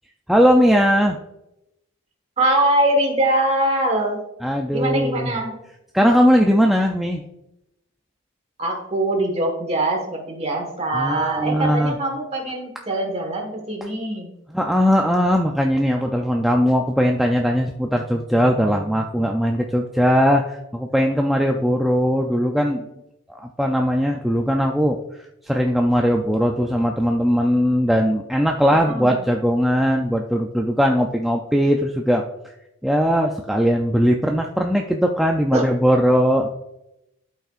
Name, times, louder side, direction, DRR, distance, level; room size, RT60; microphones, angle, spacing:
voice 1, 0.3-1.2 4.4-5.3 5.9-7.2 10.9-11.9 14.5-22.9 23.3-32.2 32.8-36.5, equal, ahead, 1 dB, 0.3 m, -19 dB
voice 2, 2.4-4.2 4.7-5.6 8.6-14.3 28.9-29.1 35.5-35.6, right 1 dB, 30° right, 2 dB, 1.4 m, -22 dB
12.5 x 5.5 x 2.5 m, 0.88 s
head